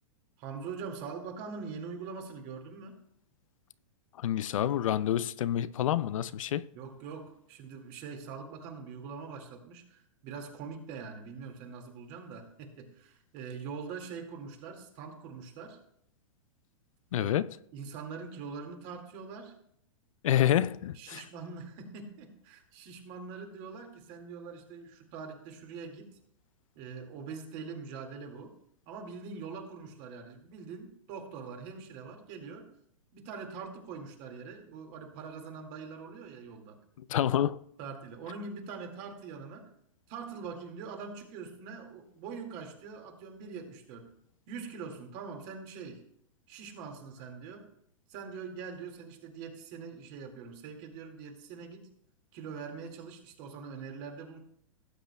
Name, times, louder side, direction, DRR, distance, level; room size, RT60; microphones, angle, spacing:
voice 1, 0.4-2.9 6.7-15.8 17.1-17.4 17.7-19.6 20.9-26.2 26.8-28.6 28.9-32.7 33.1-36.8 37.8-39.7 40.1-44.1 44.5-46.0 46.5-47.7 48.1-51.9 52.3-54.4, right 5 dB, 45° right, 2.1 m, -43 dB
voice 2, 4.2-6.7 17.1-17.6 20.2-21.2 37.1-37.6, left 11 dB, 70° left, 0.4 m, -28 dB
17.5 x 8.0 x 2.3 m
hypercardioid pair, 125°, 17 cm